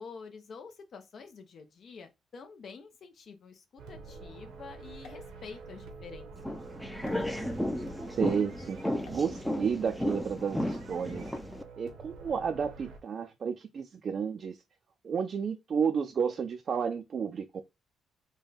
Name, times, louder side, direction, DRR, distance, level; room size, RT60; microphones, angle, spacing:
voice 1, 0.0-6.6, left 5 dB, 55° left, 0.6 m, -48 dB
sound 1, 3.8-13.0, right 4 dB, 90° right, 0.9 m, -48 dB
sound 2, 5.0-6.0 7.0-7.2 9.0-9.3, left 5 dB, 90° left, 1.0 m, -54 dB
sound 3, 6.4-11.6, left 1 dB, 5° left, 0.5 m, -34 dB
voice 2, 8.1-11.3 11.8-14.6 15.0-17.6, right 6 dB, 45° right, 0.4 m, -32 dB
3.5 x 2.2 x 3.9 m
cardioid pair, 105°, 0 cm